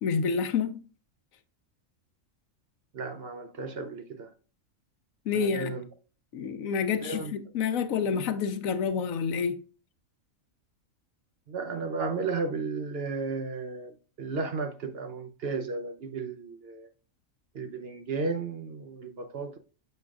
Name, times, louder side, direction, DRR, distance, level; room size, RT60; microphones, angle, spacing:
voice 1, 0.0-0.8 5.3-5.7 6.3-9.7, left 6 dB, 90° left, 1.2 m, -28 dB
voice 2, 2.9-4.3 5.3-5.9 7.0-7.3 11.5-16.9 17.5-19.6, right 4 dB, 55° right, 0.8 m, -34 dB
6.8 x 6.3 x 2.4 m
omnidirectional pair, 1.4 m